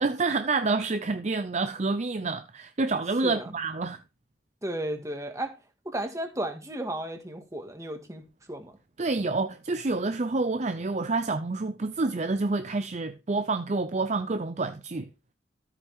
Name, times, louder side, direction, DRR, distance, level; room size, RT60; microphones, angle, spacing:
voice 1, 0.0-4.0 9.0-15.1, right 3 dB, 40° right, 0.5 m, -28 dB
voice 2, 3.2-3.5 4.6-5.5 5.9-8.2 8.5-8.7, right 1 dB, 15° right, 1.9 m, -34 dB
13.0 x 7.6 x 3.6 m
head